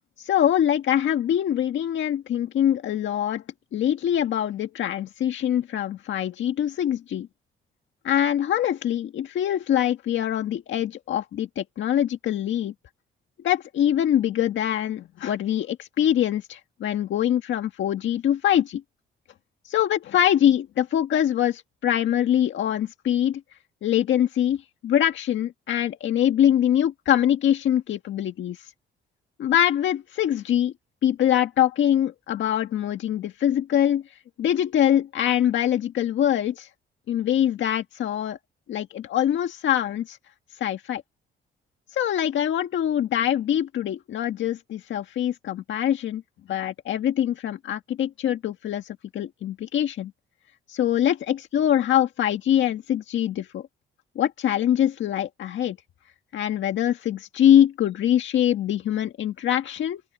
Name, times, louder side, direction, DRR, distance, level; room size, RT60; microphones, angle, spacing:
voice 1, 0.2-3.4 3.7-7.3 8.0-12.7 13.4-18.8 19.7-23.4 23.8-28.6 29.4-30.7 31.0-34.0 34.4-36.7 37.1-38.4 38.7-40.2 40.6-41.0 41.9-46.2 46.5-50.1 50.7-53.6 54.2-55.8 56.3-60.0, left 10 dB, 70° left, 1.7 m, -23 dB
open air
cardioid pair, 90°, 20 cm